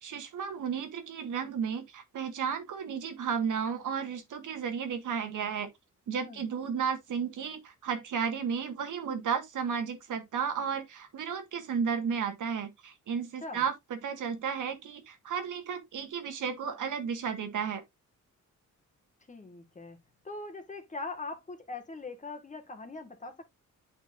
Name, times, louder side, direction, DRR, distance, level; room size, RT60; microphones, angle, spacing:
voice 1, 0.0-5.7 6.1-17.8, right 6 dB, 80° right, 1.6 m, -33 dB
voice 2, 19.3-20.0 20.2-23.4, left 3 dB, 25° left, 1.5 m, -41 dB
8.7 x 5.3 x 2.5 m
wide cardioid pair, 140°, 30 cm